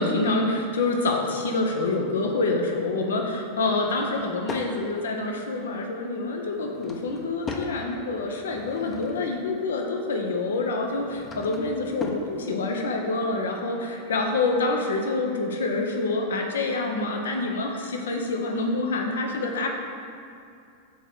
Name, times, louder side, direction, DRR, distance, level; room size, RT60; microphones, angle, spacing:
voice 1, 0.0-19.7, left 3 dB, 65° left, 2 dB, 0.9 m, -27 dB
Drawer open or close / Wood, 3.8-4.7 6.4-7.8 8.3-9.4 10.8-12.3, left 3 dB, 20° left, 0.8 m, -38 dB
7.1 x 4.4 x 6.0 m, 2.5 s
figure-of-eight pair, 90°, 0 cm